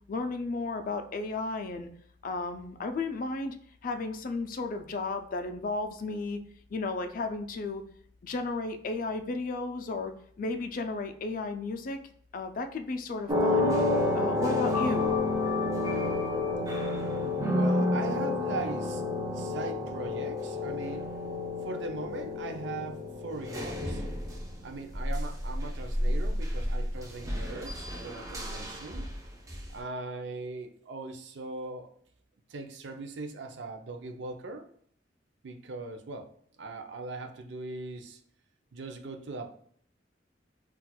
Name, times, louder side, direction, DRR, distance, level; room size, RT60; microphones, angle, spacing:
voice 1, 0.1-1.9 2.2-3.5 3.8-6.4 6.7-7.8 8.2-10.1 10.4-12.0 12.3-13.8 14.1-15.1, left 3 dB, 45° left, 7 dB, 0.3 m, -33 dB
sound 1, 13.3-24.6 24.9-29.7, left 2 dB, 20° right, 0.5 m, -30 dB
voice 2, 17.1-21.1 21.6-24.0 24.6-29.1 29.7-31.9 32.5-34.7 35.4-36.3 36.6-38.2 38.7-39.5, right 3 dB, 70° right, 5 dB, 0.5 m, -40 dB
4.1 x 2.3 x 2.2 m, 0.62 s
head